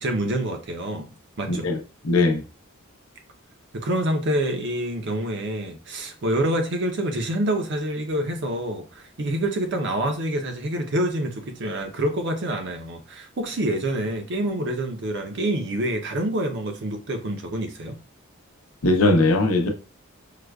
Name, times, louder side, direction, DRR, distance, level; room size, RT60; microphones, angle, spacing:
voice 1, 0.0-1.7 3.7-18.0, right 1 dB, 55° right, 0.6 m, -27 dB
voice 2, 1.5-1.8 2.0-2.4 18.8-19.7, left 2 dB, 90° left, 0.7 m, -19 dB
4.8 x 2.2 x 2.3 m
head